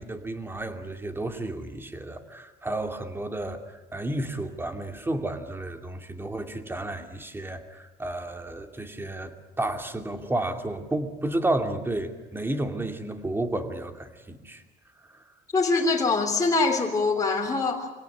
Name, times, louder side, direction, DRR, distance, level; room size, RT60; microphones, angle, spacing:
voice 1, 0.0-14.6, right 1 dB, 15° right, 6 dB, 2.6 m, -32 dB
voice 2, 15.5-17.9, left 3 dB, 20° left, -1 dB, 3.2 m, -23 dB
25.5 x 17.5 x 9.8 m, 1.2 s
cardioid pair, 110°, 17 cm